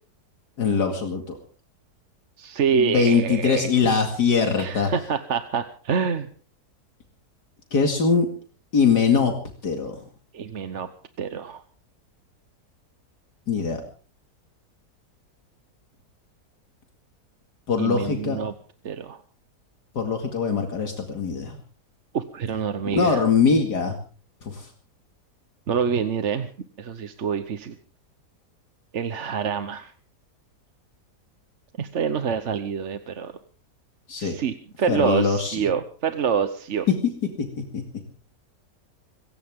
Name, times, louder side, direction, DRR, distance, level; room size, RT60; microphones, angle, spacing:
voice 1, 0.6-1.4 2.7-4.9 7.7-8.3 8.7-9.3 9.6-10.0 13.5-13.8 17.7-18.4 20.0-21.6 22.9-24.0 24.4-24.7 34.1-34.4 34.9-35.6 37.4-37.5 37.7-37.8, left 5 dB, 75° left, 4 dB, 2.8 m, -22 dB
voice 2, 2.4-3.7 4.6-6.3 10.3-10.9 11.2-11.6 17.8-18.5 18.8-19.2 22.1-23.2 25.7-26.5 26.8-27.7 28.9-29.9 31.8-33.3 34.2-36.9, right 7 dB, 50° right, 9 dB, 1.2 m, -26 dB
25.5 x 15.5 x 3.7 m, 0.40 s
omnidirectional pair, 1.8 m